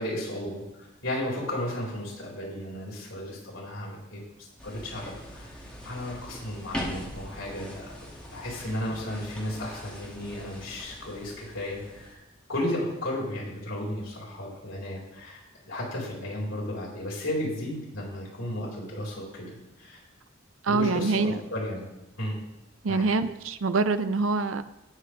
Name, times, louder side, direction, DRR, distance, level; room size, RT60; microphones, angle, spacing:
voice 1, 0.0-4.2 4.6-5.5 5.8-7.9 8.3-12.2 12.5-19.5 19.8-20.0 20.7-21.8 22.2-22.4 22.9-23.0, left 1 dB, 80° left, -5 dB, 4.1 m, -34 dB
sound 1, 4.6-12.1, equal, 5° left, 2.2 m, -41 dB
voice 2, 20.6-21.4 22.8-24.6, right 3 dB, 80° right, 11 dB, 0.6 m, -25 dB
18.5 x 6.5 x 3.4 m, 0.94 s
head